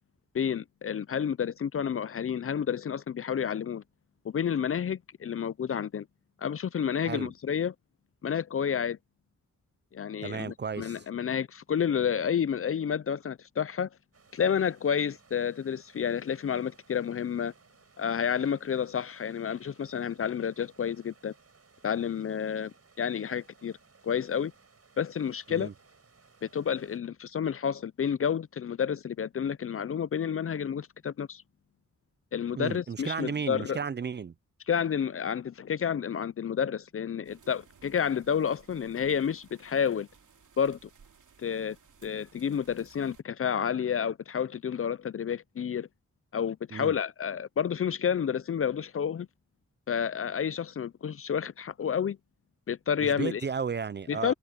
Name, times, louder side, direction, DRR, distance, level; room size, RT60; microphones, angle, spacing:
voice 1, 0.3-3.8 4.2-6.1 6.4-7.7 8.2-9.0 9.9-13.9 14.3-17.5 18.0-21.3 21.8-23.8 24.0-24.5 25.0-25.7 26.4-31.4 32.3-33.8 34.7-40.1 40.6-40.9 41.4-41.8 42.0-45.9 46.3-49.3 49.9-52.2 52.7-53.4 54.1-54.3, left 7 dB, 50° left, 0.4 m, -30 dB
voice 2, 10.2-11.0 25.5-25.7 32.6-34.3 46.7-47.0 53.0-54.3, right 6 dB, 35° right, 0.4 m, -34 dB
sound 1, 14.1-27.0, right 4 dB, 50° right, 5.4 m, -61 dB
sound 2, 37.2-43.2, right 6 dB, 80° right, 2.8 m, -59 dB
wide cardioid pair, 110°, 30 cm